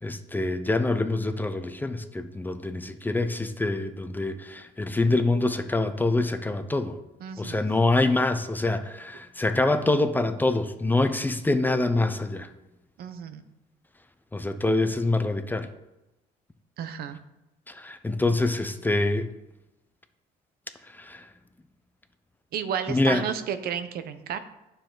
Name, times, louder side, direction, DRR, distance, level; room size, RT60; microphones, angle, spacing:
voice 1, 0.0-7.0 7.4-12.5 14.3-15.7 17.7-19.3 20.9-21.3 22.9-23.2, left 2 dB, 10° left, 9 dB, 0.7 m, -25 dB
voice 2, 7.2-7.7 13.0-13.4 16.8-17.2 22.5-24.4, right 8 dB, 65° right, 10 dB, 0.8 m, -32 dB
9.5 x 6.8 x 3.9 m, 0.97 s
cardioid pair, 110°, 17 cm